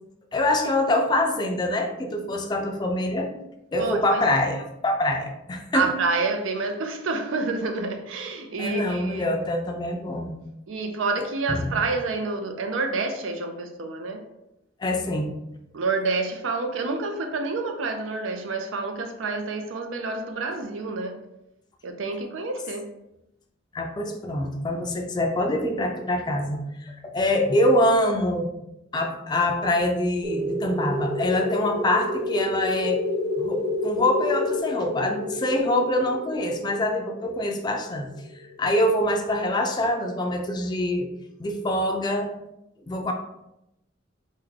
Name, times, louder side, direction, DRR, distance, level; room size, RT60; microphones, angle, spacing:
voice 1, 0.3-3.3 3.7-5.9 8.6-10.3 11.5-11.7 14.8-15.3 23.7-28.5 28.9-33.0 33.4-38.1 38.6-41.1 41.4-42.3 42.9-43.1, left 1 dB, 20° left, 0.3 m, -25 dB
voice 2, 3.8-4.2 5.7-9.3 10.7-14.2 15.7-21.2 21.8-22.9, right 3 dB, 85° right, 0.5 m, -28 dB
sound 1, 30.2-38.6, left 1 dB, 30° right, 0.7 m, -29 dB
3.5 x 2.1 x 3.2 m
head